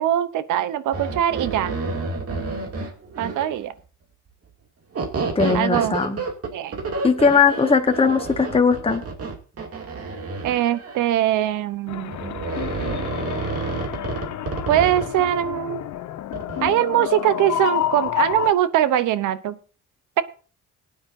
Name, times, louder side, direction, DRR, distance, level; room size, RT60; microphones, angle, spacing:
voice 1, 0.0-1.7 3.2-3.7 5.5-6.0 6.5-6.8 10.4-12.4 14.7-15.8 16.6-19.6, right 12 dB, 85° right, 15 dB, 0.9 m, -22 dB
sound 1, 0.9-3.6 4.9-11.1 12.1-15.1 16.3-16.7, right 3 dB, 50° right, 2.5 m, -29 dB
voice 2, 5.3-6.2 7.0-9.0, left 5 dB, 20° left, 6 dB, 1.2 m, -19 dB
sound 2, 11.9-18.5, left 11 dB, 70° left, 0.9 m, -29 dB
19.0 x 9.5 x 2.7 m, 0.37 s
cardioid pair, 90°, 30 cm